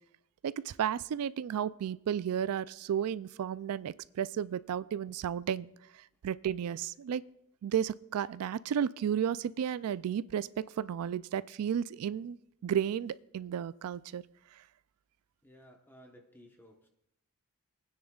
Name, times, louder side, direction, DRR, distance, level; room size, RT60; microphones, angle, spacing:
voice 1, 0.4-5.7 6.2-7.2 7.6-12.4 12.6-14.2, right 9 dB, 70° right, 17 dB, 0.3 m, -33 dB
voice 2, 15.4-16.9, equal, 10° left, 2 dB, 1.0 m, -57 dB
23.0 x 9.6 x 2.4 m, 0.77 s
head